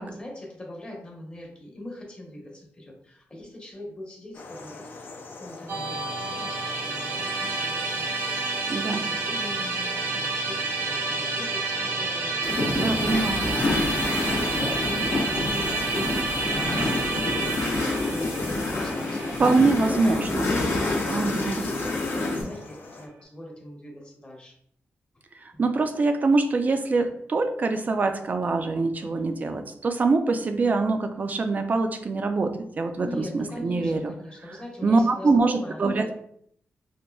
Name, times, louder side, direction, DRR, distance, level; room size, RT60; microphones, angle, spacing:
voice 1, 0.0-13.7 14.3-17.6 18.1-24.5 25.5-25.7 29.0-29.4 33.0-36.1, left 1 dB, 25° left, -1 dB, 0.9 m, -41 dB
sound 1, 4.3-23.1, left 3 dB, 45° left, 0.4 m, -43 dB
Musical instrument, 5.7-20.9, right 3 dB, 60° right, 0.7 m, -30 dB
voice 2, 8.7-9.0 12.7-13.6 19.4-20.5 21.1-21.6 25.6-34.1 34.8-36.1, right 3 dB, 35° right, 7 dB, 0.3 m, -24 dB
sound 2, 12.4-22.4, left 2 dB, 70° left, 0.8 m, -28 dB
4.2 x 2.5 x 2.2 m, 0.67 s
wide cardioid pair, 145°, 5 cm